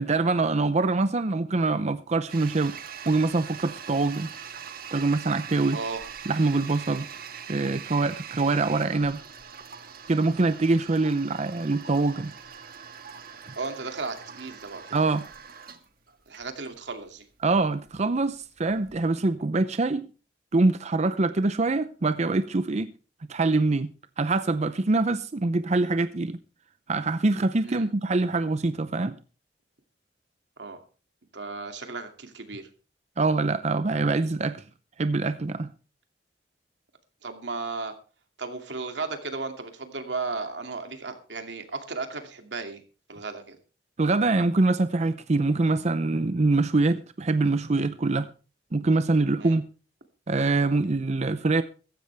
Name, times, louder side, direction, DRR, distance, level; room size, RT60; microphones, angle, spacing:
voice 1, 0.0-2.8 3.1-4.3 4.9-5.8 6.3-7.1 7.5-9.2 10.1-12.3 14.9-15.3 17.4-20.1 20.5-22.9 23.3-23.9 24.2-26.4 26.9-29.2 33.2-34.6 35.0-35.7 44.0-48.3 48.7-49.6 50.3-51.6, right 3 dB, 40° right, 0.6 m, -24 dB
Toilet flush, 2.3-19.0, right 7 dB, 55° right, 1.6 m, -43 dB
voice 2, 13.6-14.9 16.3-17.3 27.6-27.9 30.6-30.8 31.3-32.7 37.2-37.9 38.4-42.8 43.1-43.6 49.4-49.6, right 3 dB, 85° right, 2.5 m, -35 dB
16.0 x 14.5 x 3.4 m
head